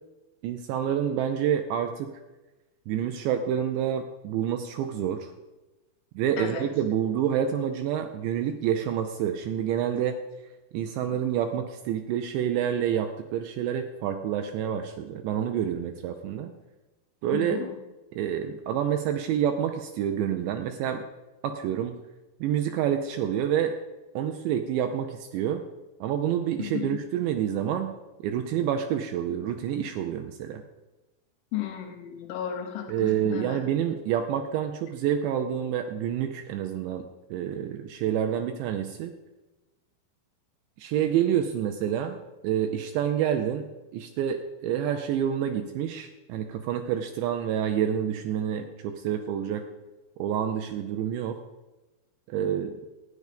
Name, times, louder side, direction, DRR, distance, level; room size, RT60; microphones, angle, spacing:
voice 1, 0.4-2.2 2.9-5.3 6.2-10.2 10.7-16.5 17.2-17.6 18.1-21.0 21.4-22.0 22.4-23.8 24.2-25.6 26.0-27.9 28.2-30.6 32.9-39.1 40.8-42.2 42.4-49.7 50.2-51.4 52.3-52.8, right 9 dB, 85° right, 6 dB, 2.5 m, -28 dB
voice 2, 17.3-17.7 26.6-27.0 31.5-33.6 52.4-52.5, left 10 dB, 75° left, 3 dB, 3.3 m, -34 dB
13.0 x 9.6 x 5.1 m, 1.1 s
omnidirectional pair, 5.8 m